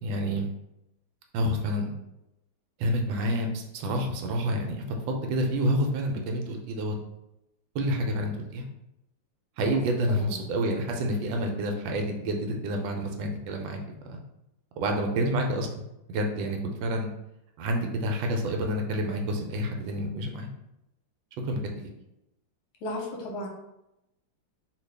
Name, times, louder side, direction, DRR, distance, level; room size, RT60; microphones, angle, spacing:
voice 1, 0.0-0.5 1.3-1.9 2.8-7.0 7.7-8.7 9.6-13.8 14.1-14.2 14.8-17.1 17.6-20.5 21.5-21.6, equal, 80° right, 3 dB, 1.3 m, -28 dB
voice 2, 10.1-10.4 22.8-23.5, left 1 dB, 85° left, 0 dB, 1.5 m, -35 dB
2.9 x 2.8 x 3.3 m, 0.87 s
omnidirectional pair, 2.1 m